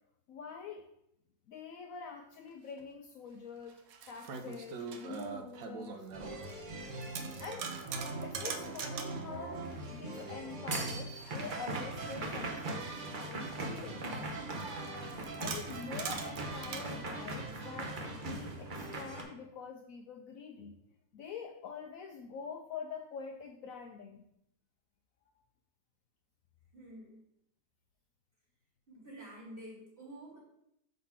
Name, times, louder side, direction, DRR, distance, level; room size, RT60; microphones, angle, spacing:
voice 1, 0.3-0.9 1.5-3.8 4.1-6.1 7.2-7.7 8.2-14.1 15.4-20.8 21.1-24.2, left 6 dB, 90° left, 4 dB, 0.7 m, -46 dB
sound 1, 2.8-2.9 3.6-6.7 7.0-9.3 11.1-14.0 14.5-16.9 17.9-19.1, right 5 dB, 70° right, 0.9 m, -44 dB
sound 2, 6.1-19.2, right 2 dB, 55° right, 0.5 m, -40 dB
voice 2, 26.7-27.2 28.9-30.4, right 1 dB, 30° right, -8 dB, 3.1 m, -49 dB
5.3 x 4.0 x 5.6 m, 0.77 s
omnidirectional pair, 2.0 m